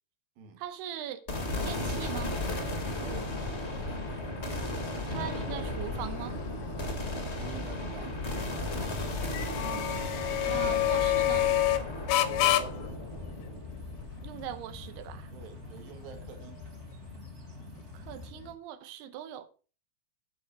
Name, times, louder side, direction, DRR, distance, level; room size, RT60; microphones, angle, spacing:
voice 1, 0.6-1.2 1.6-2.4 5.0-6.4 9.6-10.1 10.5-11.5 14.2-15.3 17.9-19.5, right 11 dB, 85° right, 3.0 m, -40 dB
sound 1, 1.3-18.5, left 13 dB, 90° left, 2.9 m, -33 dB
sound 2, 1.3-15.6, left 2 dB, 75° left, 0.6 m, -35 dB
sound 3, 1.4-18.3, equal, 45° right, 0.8 m, -49 dB
voice 2, 3.0-3.4 7.3-8.2 12.2-13.0 15.3-16.6, right 6 dB, 65° right, 3.2 m, -46 dB
11.5 x 5.4 x 5.9 m
omnidirectional pair, 4.6 m